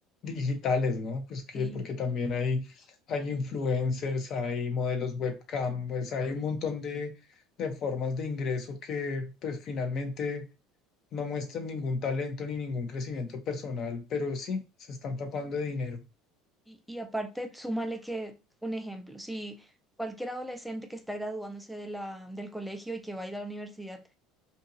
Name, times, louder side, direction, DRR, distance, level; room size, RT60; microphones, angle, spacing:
voice 1, 0.2-7.1 7.6-10.5 11.1-14.6 14.9-16.0, left 4 dB, 40° left, 0.6 m, -32 dB
voice 2, 1.5-1.8 16.7-18.3 18.6-19.7 20.0-24.0, right 1 dB, ahead, 0.4 m, -37 dB
2.7 x 2.5 x 2.6 m
cardioid pair, 150°, 0 cm